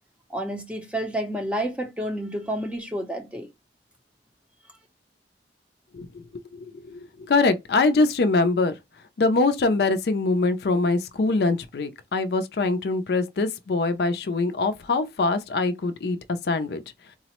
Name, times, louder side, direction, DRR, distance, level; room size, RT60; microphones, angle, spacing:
voice 1, 0.3-3.5, right 1 dB, 5° right, 0.5 m, -30 dB
voice 2, 5.9-6.2 6.5-8.7 9.2-16.2 16.4-16.8, left 3 dB, 65° left, 0.4 m, -23 dB
3.9 x 2.0 x 2.8 m
head